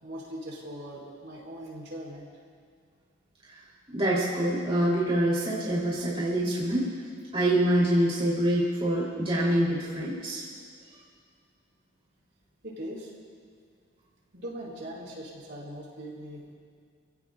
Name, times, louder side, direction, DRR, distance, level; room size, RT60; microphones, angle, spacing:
voice 1, 0.0-2.2 12.6-13.1 14.3-16.5, equal, 60° right, -4 dB, 5.0 m, -40 dB
voice 2, 3.9-6.9 7.3-10.4, right 1 dB, 30° right, -7 dB, 3.1 m, -25 dB
29.0 x 16.5 x 2.4 m, 2.2 s
head